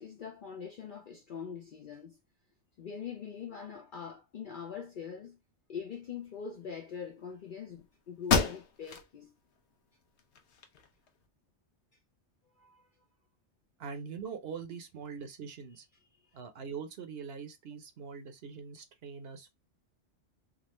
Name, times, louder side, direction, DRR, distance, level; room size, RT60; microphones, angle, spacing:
voice 1, 0.0-2.2 2.8-5.4 5.7-9.3 12.6-12.8 15.9-16.4, left 7 dB, 55° left, 0.7 m, -43 dB
sound 1, 7.7-7.8 8.2-9.1 9.6-9.7 10.2-11.1, left 5 dB, 80° left, 1.0 m, -30 dB
voice 2, 13.8-15.8 16.3-19.5, right 6 dB, 65° right, 0.9 m, -43 dB
3.6 x 2.4 x 3.0 m
omnidirectional pair, 1.1 m